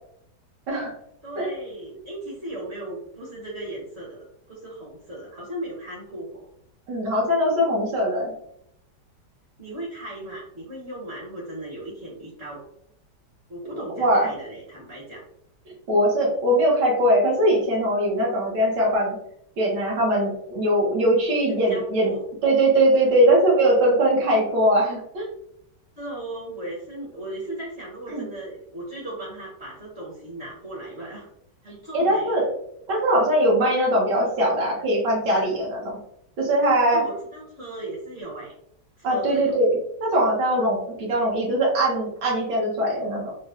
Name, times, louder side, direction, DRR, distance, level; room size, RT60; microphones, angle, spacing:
voice 1, 1.2-6.4 9.6-12.6 13.5-15.2 21.5-22.3 26.0-31.3 31.6-32.3 36.9-38.5 39.0-39.6, right 1 dB, 50° right, -5 dB, 1.0 m, -37 dB
voice 2, 6.9-8.3 13.7-14.2 15.9-19.2 19.6-22.1 22.4-25.3 28.1-28.2 31.9-32.4 32.9-35.8 36.4-37.0 39.0-43.3, right 1 dB, 80° right, -4 dB, 1.5 m, -21 dB
4.2 x 2.0 x 2.4 m, 0.74 s
omnidirectional pair, 1.9 m